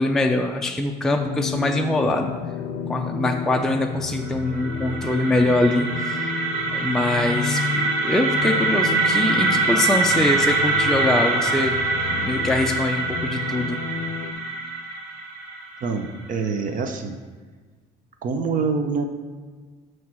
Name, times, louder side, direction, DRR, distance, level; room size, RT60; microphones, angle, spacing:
voice 1, 0.0-2.3 2.9-6.2 6.7-11.7 12.0-13.8, left 1 dB, 5° left, 2 dB, 0.4 m, -23 dB
sound 1, 1.2-14.3, left 7 dB, 65° left, 0.5 m, -32 dB
sound 2, 4.3-16.2, right 3 dB, 80° right, 1.4 m, -24 dB
voice 2, 15.8-17.2 18.2-19.1, right 5 dB, 50° right, 6 dB, 0.6 m, -25 dB
7.5 x 3.1 x 6.0 m, 1.4 s
cardioid pair, 110°, 17 cm